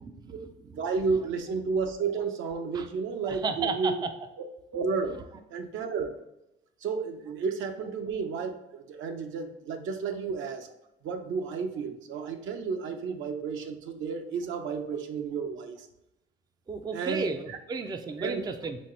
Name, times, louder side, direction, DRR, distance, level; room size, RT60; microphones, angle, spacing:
voice 1, 0.0-0.8 2.7-2.9 3.2-4.1 16.7-18.8, right 4 dB, 20° right, 7 dB, 0.4 m, -33 dB
voice 2, 0.8-4.0 4.7-5.2 5.5-6.1 6.8-10.7 11.0-15.9 16.9-17.6 18.2-18.4, right 5 dB, 70° right, 5 dB, 0.7 m, -32 dB
4.2 x 3.7 x 3.1 m, 0.88 s
cardioid pair, 110°, 21 cm